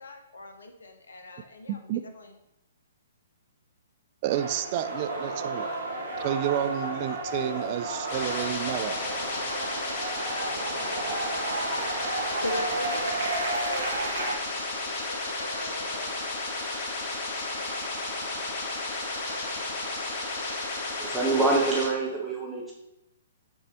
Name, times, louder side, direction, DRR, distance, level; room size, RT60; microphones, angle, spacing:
voice 1, 0.0-2.4 12.4-13.5 13.9-16.3 16.5-16.8 17.6-17.9, left 1 dB, 70° left, 6 dB, 0.9 m, -40 dB
voice 2, 1.7-2.0 4.2-5.7 6.2-9.0, right 11 dB, 35° right, 10 dB, 0.3 m, -30 dB
sound 1, 4.3-14.3, right 2 dB, 60° right, 1.5 m, -32 dB
sound 2, 8.0-21.9, left 2 dB, 40° left, 1.3 m, -33 dB
voice 3, 21.0-22.7, right 3 dB, 5° right, -4 dB, 1.8 m, -25 dB
6.2 x 4.0 x 4.2 m, 0.85 s
figure-of-eight pair, 120°, 0 cm